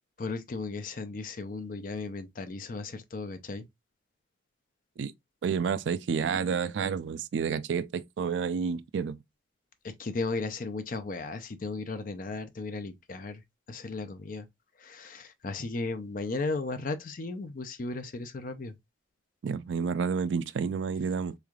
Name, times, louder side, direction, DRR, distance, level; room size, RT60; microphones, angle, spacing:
voice 1, 0.2-3.7 9.8-13.4 13.7-14.5 14.8-18.7, left 3 dB, 50° left, 0.5 m, -35 dB
voice 2, 5.4-9.2 19.4-21.4, right 6 dB, 75° right, 0.3 m, -30 dB
3.5 x 3.2 x 2.3 m
head